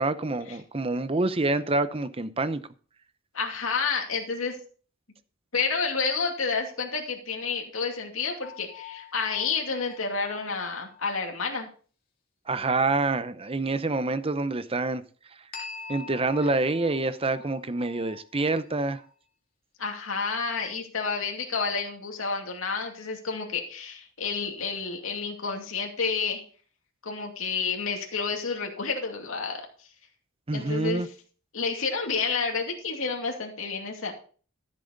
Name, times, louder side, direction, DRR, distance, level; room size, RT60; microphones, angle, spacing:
voice 1, 0.0-2.6 12.5-15.0 15.9-19.0 30.5-31.1, right 2 dB, 25° right, 0.7 m, -27 dB
voice 2, 3.3-4.6 5.5-11.7 19.8-26.4 27.0-29.6 30.5-31.1 31.5-34.1, left 5 dB, 70° left, 2.5 m, -30 dB
sound 1, 8.4-11.3 15.5-19.1, left 6 dB, 45° left, 2.1 m, -45 dB
13.5 x 7.6 x 4.0 m
head